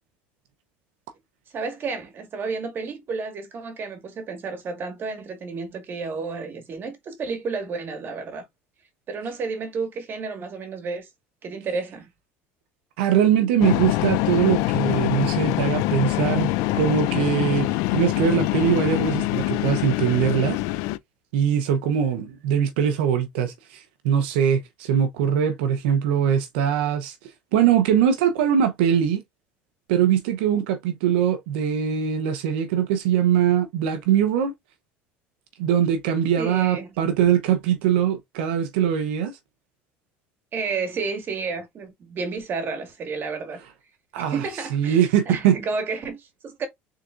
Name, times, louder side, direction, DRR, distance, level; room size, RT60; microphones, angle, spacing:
voice 1, 1.5-8.4 9.1-11.1 11.4-12.1 36.4-36.9 40.5-43.6 44.2-46.7, right 4 dB, 40° right, 1.7 m, -31 dB
voice 2, 13.0-20.6 21.3-27.1 27.5-29.2 29.9-34.5 35.6-39.3 44.1-44.5 44.7-45.6, right 9 dB, 90° right, 0.8 m, -22 dB
sound 1, 13.6-21.0, left 17 dB, 75° left, 0.4 m, -24 dB
3.7 x 3.7 x 2.5 m
supercardioid pair, 115°, 6 cm